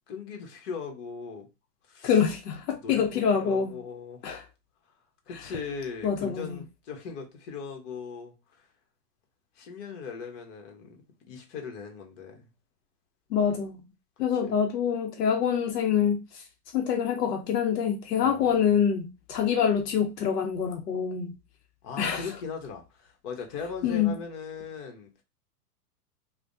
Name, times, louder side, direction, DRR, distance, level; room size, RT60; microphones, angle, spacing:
voice 1, 0.1-1.5 1.9-2.2 2.8-3.0 3.4-4.2 5.3-8.7 9.6-11.0 11.3-12.5 14.3-14.6 18.2-18.6 21.8-25.1, left 5 dB, 50° left, 1.1 m, -39 dB
voice 2, 2.0-3.7 4.2-4.4 6.0-6.5 13.3-13.8 14.2-16.4 16.7-21.3 22.0-22.2 23.8-24.1, left 7 dB, 85° left, 0.8 m, -25 dB
3.3 x 2.2 x 2.6 m
hypercardioid pair, 130°, 47 cm